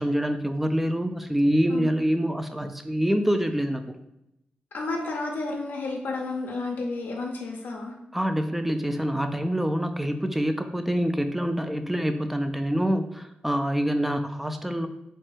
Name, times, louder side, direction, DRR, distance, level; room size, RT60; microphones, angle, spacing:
voice 1, 0.0-3.8 8.1-14.9, equal, 5° right, 8 dB, 0.3 m, -26 dB
voice 2, 4.7-7.9, left 3 dB, 75° left, -1 dB, 0.5 m, -31 dB
3.1 x 2.1 x 3.1 m, 0.85 s
cardioid pair, 60°, 3 cm